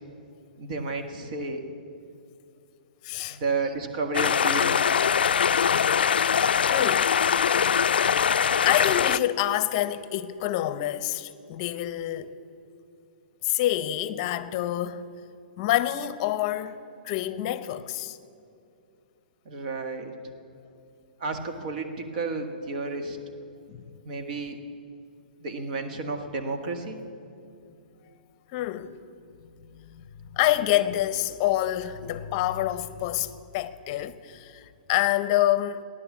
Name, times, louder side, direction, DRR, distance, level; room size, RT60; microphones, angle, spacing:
voice 1, 0.6-1.6 3.3-4.9 19.5-20.2 21.2-23.2 24.0-24.6 25.4-27.0, right 3 dB, 55° right, 1.7 m, -32 dB
voice 2, 3.0-3.4 6.7-7.1 8.6-12.3 13.4-15.1 15.6-18.2 23.7-23.9 28.5-29.0 29.4-35.8, left 13 dB, 40° left, 0.7 m, -27 dB
sound 1, 4.1-9.2, left 7 dB, 85° left, 0.3 m, -22 dB
15.0 x 11.0 x 7.3 m
hypercardioid pair, 145°, 5 cm